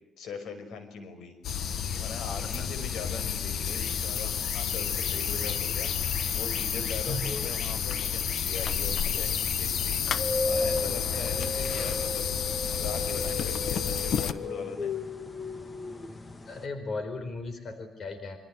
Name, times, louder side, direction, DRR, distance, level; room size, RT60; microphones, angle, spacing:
voice 1, 0.2-1.7 2.0-12.3 12.6-14.9, left 5 dB, 85° left, 9 dB, 5.6 m, -41 dB
sound 1, 1.4-14.3, left 8 dB, 65° left, 1.3 m, -30 dB
sound 2, 10.1-16.6, left 3 dB, 25° left, 1.8 m, -34 dB
voice 2, 11.1-11.7 16.5-18.4, left 2 dB, 45° left, 9 dB, 4.2 m, -37 dB
27.0 x 25.0 x 8.0 m, 0.89 s
cardioid pair, 135°, 0 cm